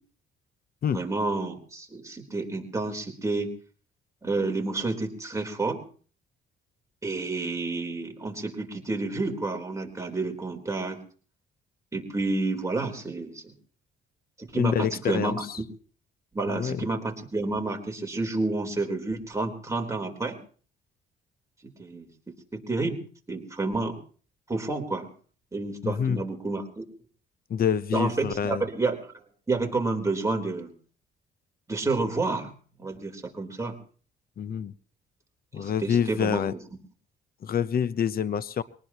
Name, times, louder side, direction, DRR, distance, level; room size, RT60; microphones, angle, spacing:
voice 1, 0.9-3.5 4.2-5.8 7.0-11.0 11.9-13.5 14.4-15.4 16.3-20.4 21.6-22.1 22.5-23.0 23.3-23.9 24.5-25.1 25.5-26.8 27.9-29.0 29.5-30.7 31.7-32.5 32.8-33.8 35.5-36.6, right 3 dB, 15° right, 2 dB, 3.8 m, -29 dB
voice 2, 14.6-15.6 16.5-16.8 25.8-26.2 27.5-28.6 34.4-34.7 35.5-36.5 37.4-38.6, left 8 dB, 50° left, 16 dB, 0.8 m, -27 dB
23.5 x 19.0 x 3.0 m, 0.42 s
cardioid pair, 90°, 20 cm